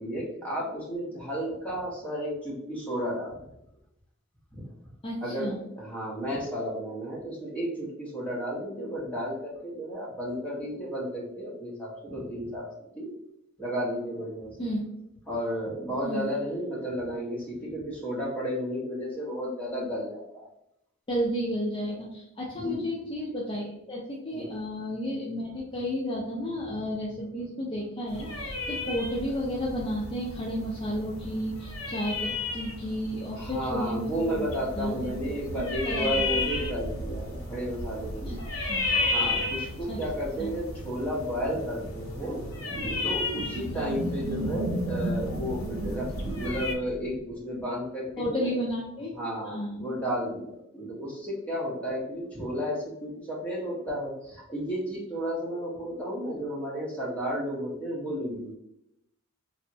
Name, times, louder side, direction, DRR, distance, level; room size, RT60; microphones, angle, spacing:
voice 1, 0.0-3.4 4.5-4.7 5.2-12.7 12.9-13.1 13.6-14.6 15.3-20.5 22.5-22.8 24.3-24.5 33.4-38.3 39.0-42.4 42.7-48.5 49.2-58.5, equal, 5° left, -5 dB, 0.8 m, -33 dB
voice 2, 5.0-5.6 14.6-14.8 16.0-16.3 21.1-34.4 34.8-35.1 35.5-36.2 38.3-38.4 38.7-38.9 39.9-40.0 40.4-40.5 43.7-43.8 48.2-49.1 49.4-49.9, equal, 25° left, -5 dB, 0.4 m, -32 dB
sound 1, 28.1-46.7, left 2 dB, 75° left, 0.7 m, -34 dB
sound 2, 42.3-47.3, right 1 dB, 70° right, 0.4 m, -34 dB
3.4 x 2.0 x 2.7 m, 0.83 s
head